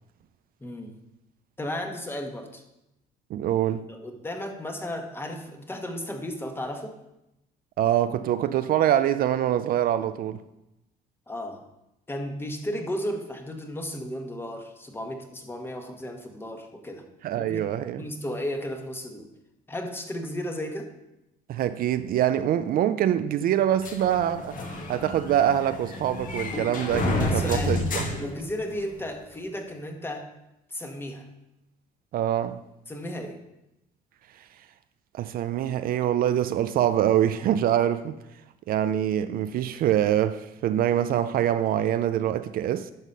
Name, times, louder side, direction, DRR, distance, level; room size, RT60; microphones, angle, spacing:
voice 1, 0.6-0.9 1.6-2.6 3.9-7.0 11.3-11.6 12.1-17.0 17.3-17.6 18.0-19.3 19.7-20.9 27.2-27.8 28.1-30.3 30.7-31.3 32.9-33.4, left 1 dB, 15° left, 1.2 m, -34 dB
voice 2, 3.3-3.9 7.8-10.4 17.2-18.0 21.5-28.0 32.1-32.6 34.4-34.5 35.1-38.2 38.7-42.9, right 11 dB, 60° right, 0.4 m, -24 dB
sound 1, 23.8-29.1, left 2 dB, 50° left, 1.5 m, -30 dB
11.0 x 4.1 x 5.4 m
cardioid pair, 110°, 17 cm